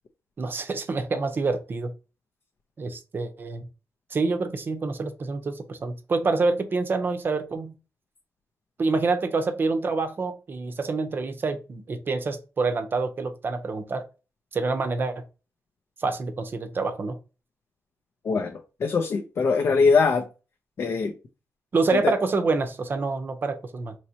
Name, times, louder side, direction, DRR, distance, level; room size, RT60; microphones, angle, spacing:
voice 1, 0.4-1.9 2.8-3.6 4.1-7.7 8.8-14.1 14.5-15.2 16.0-17.2 21.7-24.0, right 3 dB, 40° right, 0.6 m, -27 dB
voice 2, 18.2-20.3 20.8-21.1 21.9-22.1, left 4 dB, 55° left, 0.5 m, -22 dB
4.3 x 3.1 x 2.8 m
cardioid pair, 115°, 5 cm